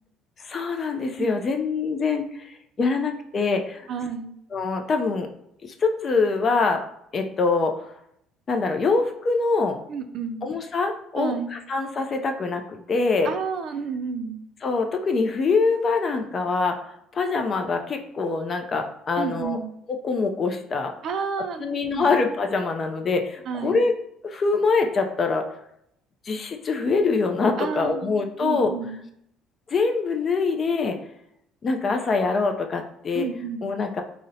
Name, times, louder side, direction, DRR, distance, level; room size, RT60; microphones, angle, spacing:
voice 1, 0.4-3.9 4.5-5.3 5.6-6.8 7.1-7.7 8.5-9.8 10.4-13.3 14.6-16.8 17.1-19.6 20.0-20.9 21.6-23.9 24.2-25.5 26.3-28.7 29.7-31.0 31.6-33.3 33.6-34.0, left 4 dB, 40° left, 5 dB, 0.4 m, -24 dB
voice 2, 3.9-4.3 9.9-10.4 11.1-11.6 13.2-14.4 19.2-19.7 21.0-22.1 23.5-23.8 27.6-29.0 33.1-33.7, right 6 dB, 55° right, 8 dB, 0.4 m, -31 dB
2.5 x 2.1 x 3.9 m, 0.74 s
supercardioid pair, 95°, 0 cm